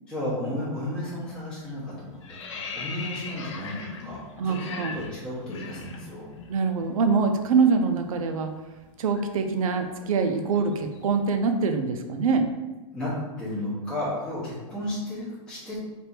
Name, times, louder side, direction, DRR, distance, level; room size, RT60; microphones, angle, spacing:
voice 1, 0.1-6.3 12.9-15.9, left 1 dB, 5° left, -10 dB, 0.8 m, -33 dB
sound 1, 1.0-1.3 1.6-6.5 6.8-7.0 7.3-11.3, left 5 dB, 60° left, 0.7 m, -40 dB
voice 2, 4.4-4.9 6.5-8.5 9.0-12.5, right 5 dB, 85° right, 6 dB, 0.6 m, -24 dB
3.4 x 2.6 x 4.4 m, 1.2 s
supercardioid pair, 175°, 17 cm